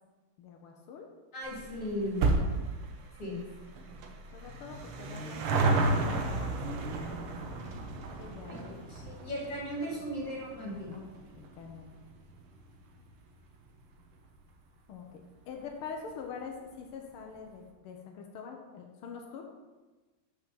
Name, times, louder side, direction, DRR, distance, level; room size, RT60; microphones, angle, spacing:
voice 1, 0.4-1.1 4.3-5.4 5.7-6.6 6.9-7.0 8.2-8.8 10.9-11.1 11.4-11.9 14.9-19.4, left 5 dB, 90° left, 2 dB, 1.8 m, -45 dB
voice 2, 1.3-2.2 3.2-3.4 8.5-10.9, equal, 35° left, -5 dB, 3.3 m, -37 dB
sound 1, 1.4-14.2 14.5-14.6 15.5-15.6 15.8-15.9 16.1-16.2, right 3 dB, 80° right, 1.8 m, -33 dB
5.9 x 5.9 x 6.9 m, 1.2 s
omnidirectional pair, 2.3 m